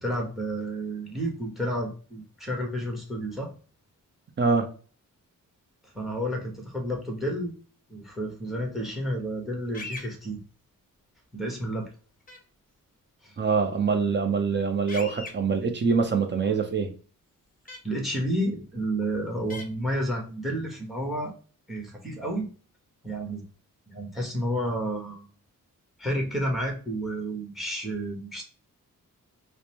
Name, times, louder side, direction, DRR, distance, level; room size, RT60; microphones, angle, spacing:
voice 1, 0.0-3.5 5.9-7.5 7.9-10.4 11.3-11.9 13.2-13.4 17.8-21.3 21.7-22.5 23.0-23.4 23.9-25.2 26.0-28.4, right 1 dB, ahead, 1.1 m, -31 dB
voice 2, 4.4-4.7 13.4-16.9, right 5 dB, 35° right, 0.7 m, -24 dB
sound 1, 9.7-10.1 12.3-12.4 14.9-15.3 17.7-17.8 19.5-19.6, left 3 dB, 25° left, 0.8 m, -38 dB
5.0 x 2.1 x 2.9 m
cardioid pair, 105°, 33 cm